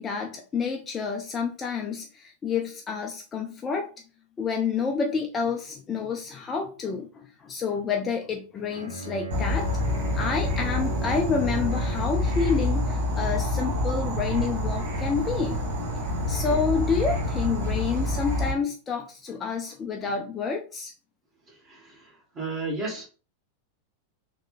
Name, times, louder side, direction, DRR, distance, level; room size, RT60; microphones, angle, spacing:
voice 1, 0.0-3.9 4.4-9.7 10.1-15.7 16.2-20.9, left 5 dB, 20° left, 2 dB, 0.4 m, -29 dB
Bowed string instrument, 8.7-12.7, right 1 dB, 90° right, 0.7 m, -36 dB
Insect / Frog, 9.3-18.5, left 1 dB, 60° right, 1.2 m, -27 dB
voice 2, 21.6-23.1, right 3 dB, 20° right, -2 dB, 1.1 m, -33 dB
3.0 x 2.1 x 2.3 m, 0.36 s
figure-of-eight pair, 90°, 0 cm